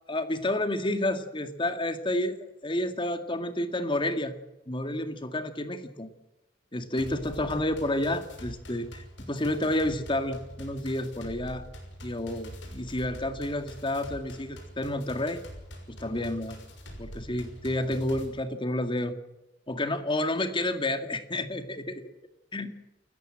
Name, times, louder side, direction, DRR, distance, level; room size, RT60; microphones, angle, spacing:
voice 1, 0.1-4.4 4.7-6.1 6.7-11.7 12.0-15.4 15.9-16.6 17.0-19.2 19.7-22.0 22.5-22.7, left 1 dB, 25° left, 9 dB, 2.1 m, -30 dB
sound 1, 7.0-18.3, equal, 75° left, 6.2 m, -45 dB
28.5 x 14.5 x 7.5 m, 1.0 s
head